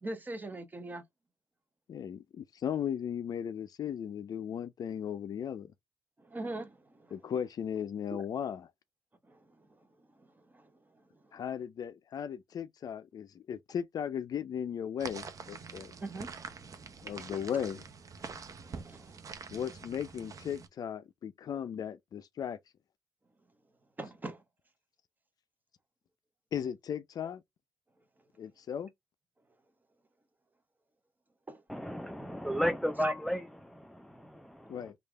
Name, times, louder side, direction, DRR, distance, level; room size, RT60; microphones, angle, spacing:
voice 1, 0.0-1.0 6.2-7.1 9.3-9.7 10.2-10.3 10.5-10.7 15.7-17.3 18.2-19.2 24.0-24.4 31.5-31.6 33.0-33.1, right 2 dB, 20° right, 0.9 m, -43 dB
voice 2, 1.9-5.7 7.1-8.7 11.3-15.9 17.0-17.8 19.5-22.6 26.5-27.4 28.4-28.9 34.7-35.0, left 8 dB, 55° left, 0.4 m, -36 dB
sound 1, 15.0-20.7, right 5 dB, 45° right, 0.7 m, -45 dB
voice 3, 31.7-34.9, equal, ahead, 0.5 m, -34 dB
3.3 x 2.4 x 3.3 m
supercardioid pair, 70°, 8 cm